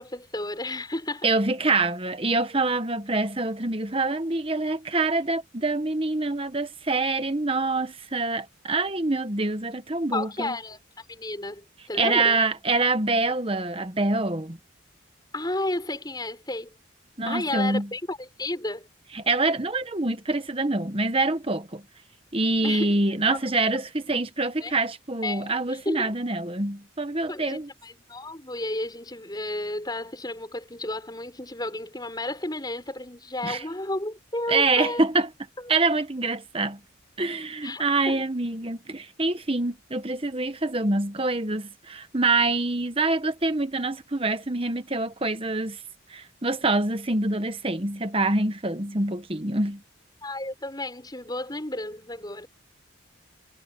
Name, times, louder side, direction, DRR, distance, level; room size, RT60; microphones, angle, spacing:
voice 1, 0.0-1.3 10.1-12.4 15.3-16.7 17.3-18.9 22.6-22.9 24.6-24.7 25.2-26.1 27.3-35.0 37.6-38.2 50.2-52.5, left 2 dB, 20° left, 6.4 m, -32 dB
voice 2, 1.2-10.6 11.9-14.6 17.2-17.9 19.1-21.8 22.3-27.7 33.4-33.6 34.5-35.3 35.7-36.8 37.2-45.8 46.1-49.8, right 2 dB, 25° right, 1.2 m, -25 dB
head